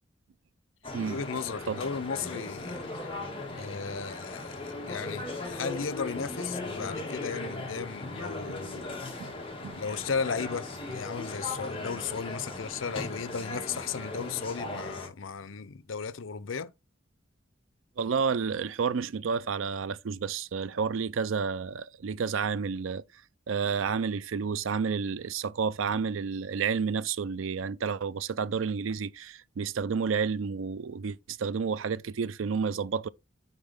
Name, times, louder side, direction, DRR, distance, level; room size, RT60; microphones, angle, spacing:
sound 1, 0.8-15.1, left 2 dB, 30° left, 1.9 m, -38 dB
voice 1, 1.1-3.1 3.6-9.0 9.8-16.7, left 5 dB, 85° left, 0.6 m, -35 dB
voice 2, 18.0-23.0 23.5-33.1, right 6 dB, 85° right, 0.5 m, -30 dB
9.0 x 4.0 x 3.5 m
head